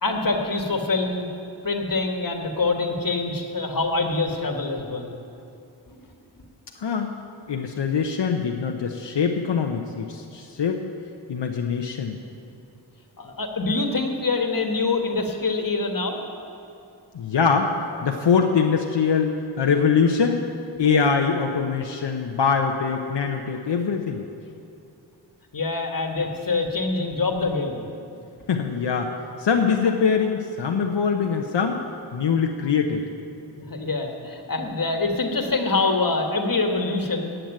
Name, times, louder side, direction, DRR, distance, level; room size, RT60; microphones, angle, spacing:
voice 1, 0.0-1.3 1.6-5.1 5.9-6.1 13.2-16.2 25.5-27.8 33.6-37.3, left 3 dB, 50° left, 3 dB, 1.5 m, -25 dB
voice 2, 6.8-7.1 7.5-10.8 11.3-12.2 17.1-17.7 18.0-20.4 20.8-24.2 28.5-29.1 29.4-31.8 32.1-33.1, left 6 dB, 75° left, 2 dB, 0.8 m, -23 dB
8.8 x 8.0 x 9.0 m, 2.6 s
cardioid pair, 45°, 43 cm